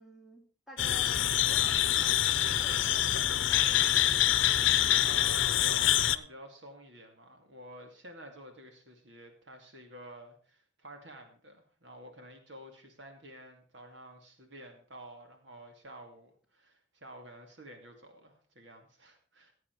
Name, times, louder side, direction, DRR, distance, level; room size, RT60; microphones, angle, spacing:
voice 1, 0.0-4.1, equal, ahead, -1 dB, 3.1 m, -51 dB
sound 1, 0.8-6.2, left 12 dB, 85° left, 0.7 m, -26 dB
voice 2, 5.0-19.5, right 1 dB, 65° right, 4 dB, 2.5 m, -50 dB
16.0 x 8.3 x 4.7 m, 0.42 s
head